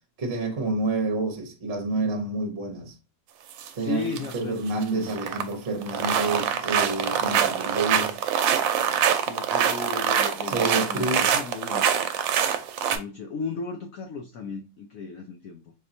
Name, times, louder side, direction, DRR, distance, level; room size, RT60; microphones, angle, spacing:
voice 1, 0.2-2.9 3.7-4.1 4.3-8.2 10.5-11.3, right 2 dB, 45° right, 0.9 m, -28 dB
sound 1, 3.5-3.7 4.1-4.4 4.7-5.5 5.8-13.0, right 8 dB, 85° right, 1.3 m, -24 dB
voice 2, 3.7-5.2 9.3-11.8 12.9-15.7, left 4 dB, 80° left, 0.7 m, -35 dB
4.0 x 2.8 x 2.6 m
omnidirectional pair, 2.0 m